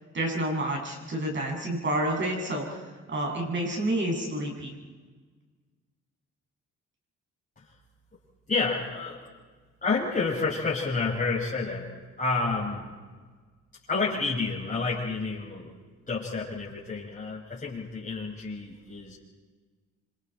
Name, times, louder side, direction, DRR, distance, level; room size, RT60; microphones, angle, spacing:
voice 1, 0.1-4.7, right 1 dB, 40° right, 0 dB, 7.2 m, -29 dB
voice 2, 8.5-9.2 9.8-11.9 12.2-12.9 13.9-15.7 16.1-19.2, left 4 dB, 30° left, -7 dB, 6.0 m, -29 dB
27.0 x 26.5 x 4.5 m, 1.4 s
cardioid pair, 110°, 29 cm